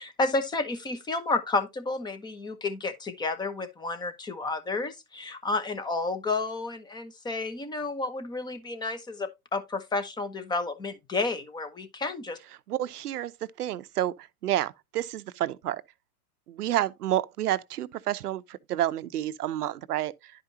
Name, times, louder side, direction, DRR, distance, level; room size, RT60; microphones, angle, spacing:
voice 1, 0.0-12.4, left 3 dB, 10° left, 0.9 m, -31 dB
voice 2, 12.7-13.3 13.6-14.1 14.4-15.8 16.5-20.3, right 13 dB, 85° right, 0.8 m, -29 dB
11.0 x 5.1 x 2.8 m
hypercardioid pair, 135°, 45 cm